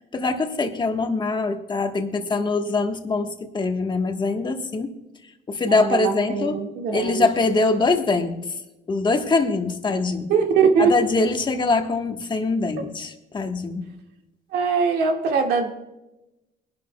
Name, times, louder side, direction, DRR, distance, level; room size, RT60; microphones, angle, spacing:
voice 1, 0.1-4.9 5.5-6.6 6.9-8.4 8.9-10.3 10.8-13.9, left 3 dB, 25° left, 5 dB, 1.3 m, -23 dB
voice 2, 5.6-7.2 10.3-10.9 14.5-15.7, right 5 dB, 80° right, 2 dB, 1.8 m, -21 dB
22.5 x 11.0 x 2.3 m, 0.98 s
cardioid pair, 110°, 17 cm